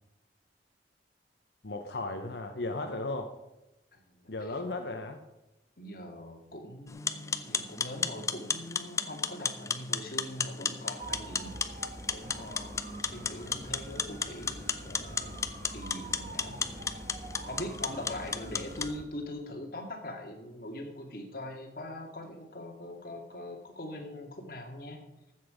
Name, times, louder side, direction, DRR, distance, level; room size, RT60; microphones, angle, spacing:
voice 1, 1.6-3.3 4.3-5.2, left 2 dB, 80° left, 5 dB, 0.9 m, -35 dB
voice 2, 3.9-4.5 5.8-11.8 12.1-16.9 17.5-25.0, left 1 dB, 55° left, 3 dB, 2.1 m, -42 dB
sound 1, 6.9-18.9, left 5 dB, 15° left, 0.5 m, -34 dB
sound 2, 11.0-19.1, right 1 dB, 45° right, 1.3 m, -45 dB
14.0 x 7.6 x 5.1 m, 0.98 s
head